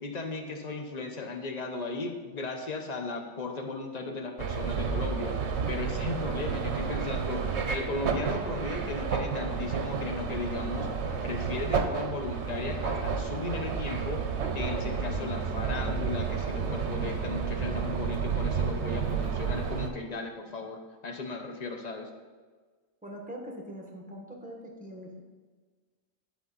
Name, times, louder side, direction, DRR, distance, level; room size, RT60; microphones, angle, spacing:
voice 1, 0.0-5.4 5.7-10.9 11.2-14.2 14.5-22.1, left 3 dB, 35° left, 4 dB, 0.8 m, -36 dB
sound 1, 4.4-19.9, right 6 dB, 65° right, 1.0 m, -31 dB
voice 2, 23.0-25.3, equal, 5° right, 0 dB, 1.2 m, -42 dB
11.0 x 4.3 x 4.0 m, 1.4 s
omnidirectional pair, 1.3 m